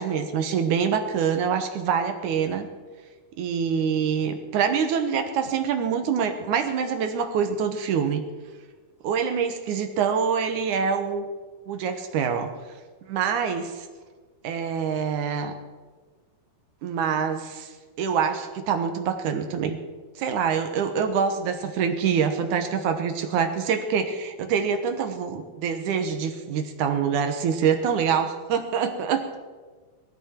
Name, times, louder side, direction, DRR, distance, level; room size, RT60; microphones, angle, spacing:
voice 1, 0.0-2.7 3.4-8.2 9.0-11.3 11.7-12.5 13.1-13.9 14.4-15.5 16.8-19.8 20.2-29.3, right 7 dB, 65° right, 7 dB, 2.0 m, -25 dB
20.5 x 14.5 x 4.4 m, 1.4 s
omnidirectional pair, 4.7 m